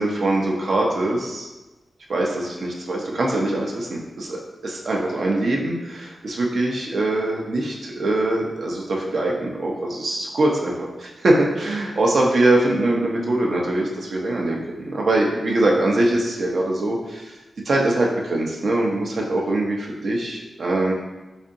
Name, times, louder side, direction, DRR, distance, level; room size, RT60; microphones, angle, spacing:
voice 1, 0.0-1.5 2.1-4.4 4.6-17.3 17.6-20.9, right 2 dB, 65° right, -2 dB, 0.6 m, -22 dB
4.1 x 2.7 x 2.5 m, 1.1 s
wide cardioid pair, 105°, 0 cm